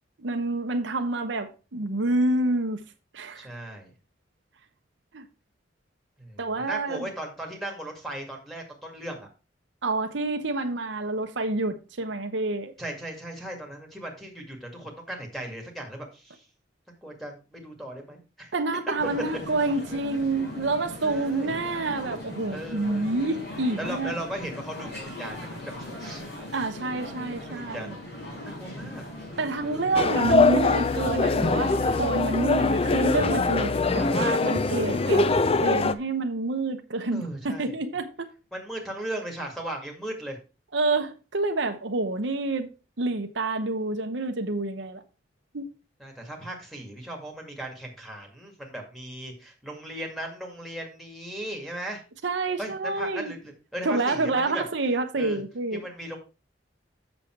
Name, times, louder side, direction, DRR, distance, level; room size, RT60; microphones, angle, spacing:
voice 1, 0.2-2.8 3.1-3.5 5.1-5.2 6.4-7.0 9.8-12.7 18.5-24.1 26.5-27.9 29.4-35.3 35.6-38.3 40.7-42.7 43.0-45.0 45.5-45.7 52.2-53.3 53.8-55.8, right 2 dB, 70° right, 0.9 m, -28 dB
voice 2, 3.3-3.9 6.2-9.3 12.8-16.5 17.0-18.5 21.0-21.6 22.5-23.1 23.8-24.9 25.2-26.2 27.5-29.0 29.4-29.9 34.0-34.3 37.1-37.7 38.5-40.4 46.0-52.0 52.6-54.6 55.1-55.4 55.7-56.2, right 1 dB, ahead, 2.1 m, -37 dB
sound 1, 19.0-35.7, left 1 dB, 65° left, 4.9 m, -39 dB
sound 2, 30.0-35.9, left 3 dB, 30° left, 0.4 m, -23 dB
7.0 x 6.9 x 4.6 m
head